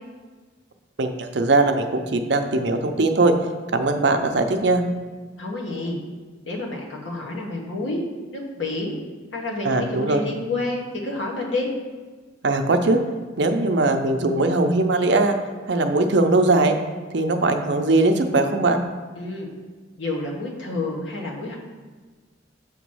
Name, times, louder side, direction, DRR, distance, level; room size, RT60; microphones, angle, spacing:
voice 1, 1.0-3.3 3.7-4.8 9.6-10.2 12.4-13.0 13.4-15.3 15.7-16.7 17.1-18.8, right 2 dB, 65° right, 5 dB, 0.6 m, -20 dB
voice 2, 5.4-6.0 6.4-8.0 8.3-9.0 9.3-11.7 19.1-19.5 20.0-21.6, left 2 dB, 80° left, -2 dB, 1.3 m, -29 dB
7.9 x 3.0 x 6.2 m, 1.4 s
head